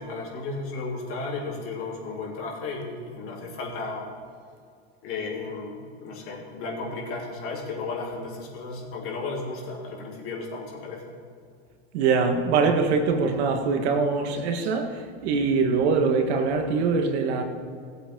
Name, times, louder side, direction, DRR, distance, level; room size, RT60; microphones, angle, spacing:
voice 1, 0.0-4.1 5.0-11.1, left 3 dB, 40° left, -4 dB, 3.5 m, -34 dB
voice 2, 11.9-17.4, right 4 dB, 75° right, 5 dB, 1.7 m, -23 dB
19.0 x 8.2 x 3.8 m, 2.3 s
supercardioid pair, 140°, 33 cm